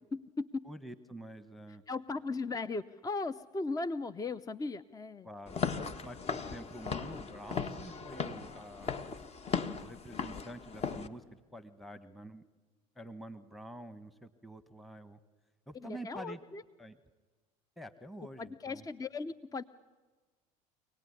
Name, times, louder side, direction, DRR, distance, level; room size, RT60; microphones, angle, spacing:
voice 1, 0.1-0.6 1.9-5.3 15.8-16.6 18.4-19.6, left 3 dB, 20° left, 14 dB, 0.7 m, -37 dB
voice 2, 0.6-1.8 5.2-5.6 6.0-8.9 9.8-11.2 11.5-12.4 13.0-15.2 15.7-16.4 16.8-17.0 17.8-18.8, right 1 dB, ahead, 11 dB, 1.3 m, -47 dB
Walk footsteps / Siren, 5.5-11.1, left 6 dB, 35° left, 1.5 m, -37 dB
25.5 x 18.5 x 9.8 m, 1.3 s
hypercardioid pair, 70°, 18 cm